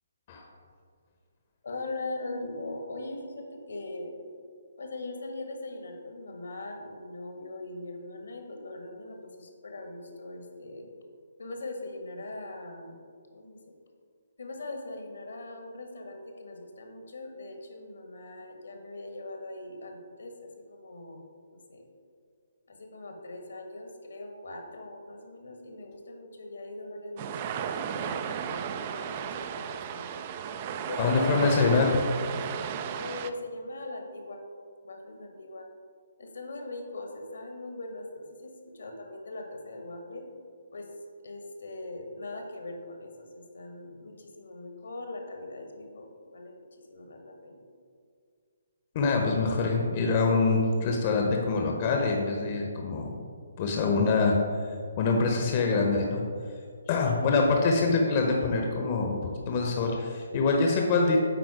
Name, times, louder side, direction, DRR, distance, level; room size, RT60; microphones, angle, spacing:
voice 1, 1.6-4.1 4.8-10.9 11.4-13.0 13.3-13.6 14.4-21.2 21.5-21.9 22.7-30.2 30.8-32.4 33.0-34.4 34.8-35.7 36.2-40.3 40.7-40.9 41.2-47.6, left 2 dB, 65° left, 4 dB, 1.2 m, -41 dB
sound 1, 27.2-33.3, right 8 dB, 35° right, 0.3 m, -34 dB
voice 2, 31.0-32.0 48.9-53.1 53.6-54.4 55.0-56.2 56.9-61.2, left 3 dB, 35° left, 1 dB, 0.8 m, -25 dB
9.2 x 3.9 x 4.9 m, 2.1 s
figure-of-eight pair, 135°, 0 cm